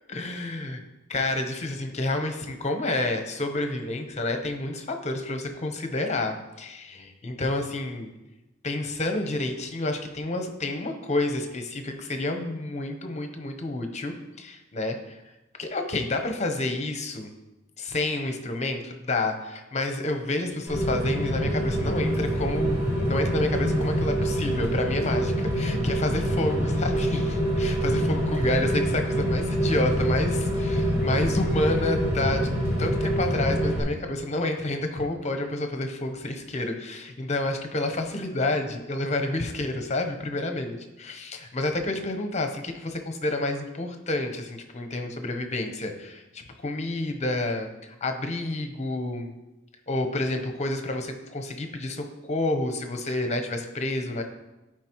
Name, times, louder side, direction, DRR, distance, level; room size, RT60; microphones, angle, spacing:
voice 1, 0.1-0.8 1.1-8.1 8.6-15.2 15.6-17.3 17.8-32.5 32.8-49.3 49.9-54.2, left 2 dB, 35° left, 5 dB, 0.8 m, -29 dB
Rain, 20.7-33.8, equal, 15° right, 2.0 m, -25 dB
13.0 x 4.8 x 3.0 m, 1.0 s
head